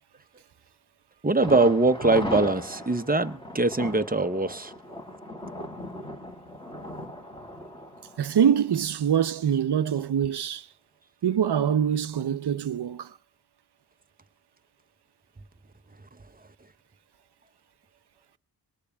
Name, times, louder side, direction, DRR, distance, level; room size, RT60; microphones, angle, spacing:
voice 1, 1.2-4.7, right 2 dB, 20° right, 0.8 m, -22 dB
Thunder, 1.4-9.2 9.5-9.6 10.0-10.1, left 1 dB, 10° left, 2.9 m, -37 dB
voice 2, 8.2-10.7 11.2-13.2, right 8 dB, 65° right, 0.7 m, -24 dB
24.5 x 19.0 x 2.3 m
cardioid pair, 55°, 44 cm